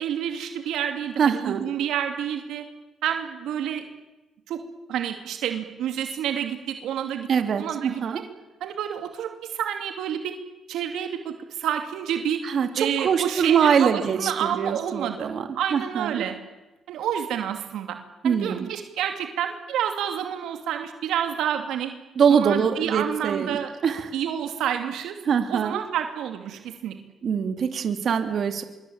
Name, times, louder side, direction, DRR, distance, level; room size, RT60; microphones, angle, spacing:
voice 1, 0.0-2.6 3.0-3.8 4.5-4.6 4.9-7.3 7.6-8.0 8.6-10.4 10.7-12.4 12.8-15.3 15.6-16.4 16.9-18.0 18.2-21.9 22.3-23.7 24.1-25.2 25.5-27.0, right 9 dB, 85° right, 5 dB, 2.7 m, -29 dB
voice 2, 1.2-1.6 7.3-8.2 12.4-15.4 15.7-16.2 18.2-18.7 22.2-23.6 23.8-24.1 25.3-25.8 27.2-28.6, right 7 dB, 60° right, 6 dB, 2.9 m, -23 dB
25.0 x 23.5 x 8.9 m, 1.1 s
cardioid pair, 90°, 0 cm